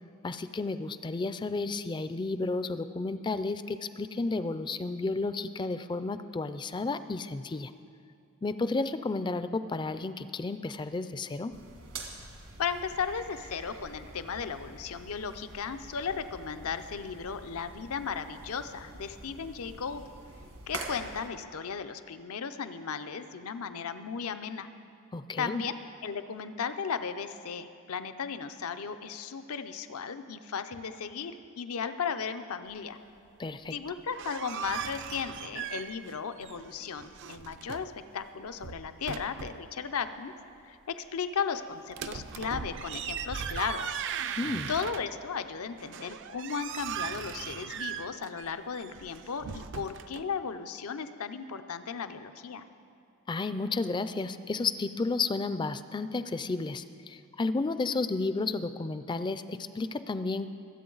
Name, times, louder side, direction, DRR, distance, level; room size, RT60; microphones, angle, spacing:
voice 1, 0.2-7.7 8.4-11.5 25.1-25.6 33.4-33.7 44.4-44.7 53.3-60.6, left 3 dB, 20° left, 12 dB, 0.3 m, -32 dB
sound 1, 11.5-21.3, right 3 dB, 75° right, 1.6 m, -46 dB
voice 2, 12.6-20.0 20.7-24.7 25.4-33.0 33.7-40.3 40.6-44.0 44.7-52.6, left 6 dB, 85° left, 10 dB, 0.6 m, -35 dB
sound 2, 33.9-36.2 36.4-38.0 38.5-39.7 41.9-45.3 45.8-50.2, right 8 dB, 55° right, 0.4 m, -38 dB
23.0 x 8.3 x 3.9 m, 2.4 s
head